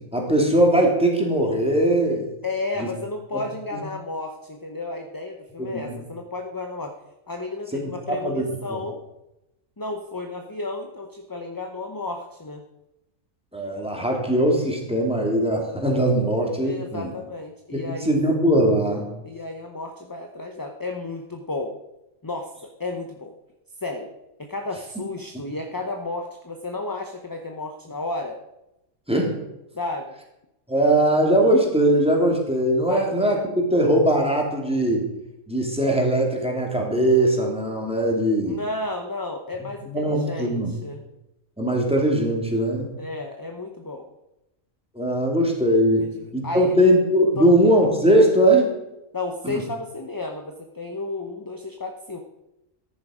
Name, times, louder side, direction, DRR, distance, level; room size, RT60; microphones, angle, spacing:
voice 1, 0.1-2.3 2.8-2.9 3.7-3.8 5.6-6.0 7.7-8.4 13.5-17.1 17.7-19.1 29.1-29.3 30.7-35.1 35.5-38.6 39.9-40.7 41.6-42.9 44.9-46.0 46.3-48.7 49.4-49.6, right 1 dB, 5° right, 0 dB, 2.7 m, -20 dB
voice 2, 2.4-7.0 7.3-9.0 9.8-12.6 16.6-18.1 19.2-21.7 22.2-23.3 23.8-24.1 24.4-28.4 29.7-30.1 32.9-33.4 38.4-41.0 43.0-44.1 46.0-46.8 47.4-47.5 49.1-52.2, left 2 dB, 20° left, 4 dB, 0.7 m, -32 dB
14.0 x 11.0 x 5.0 m, 0.92 s
omnidirectional pair, 1.4 m